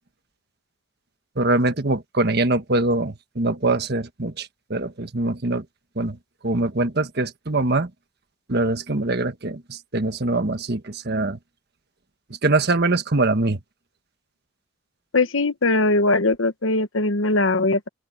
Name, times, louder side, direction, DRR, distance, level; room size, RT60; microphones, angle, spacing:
voice 1, 1.4-5.6 6.0-6.2 6.4-7.9 8.5-11.4 12.4-13.6, right 2 dB, 55° right, 1.4 m, -23 dB
voice 2, 15.1-17.9, left 2 dB, 80° left, 1.2 m, -20 dB
open air
head